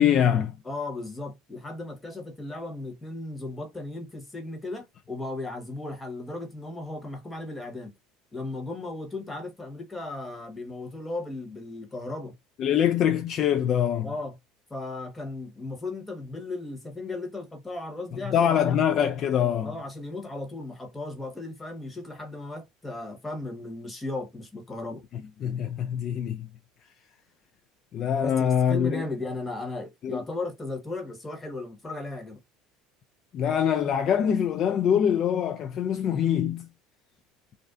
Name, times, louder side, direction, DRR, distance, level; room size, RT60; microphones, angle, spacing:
voice 1, 0.0-0.5 12.6-14.1 18.1-19.7 25.1-26.5 27.9-29.0 30.0-30.2 33.3-36.7, left 9 dB, 50° left, 0.3 m, -24 dB
voice 2, 0.6-7.9 8.3-12.3 14.0-14.3 14.7-18.8 19.6-25.0 28.2-32.4, left 2 dB, 15° left, 1.1 m, -36 dB
2.5 x 2.1 x 2.4 m
hypercardioid pair, 85°, 0 cm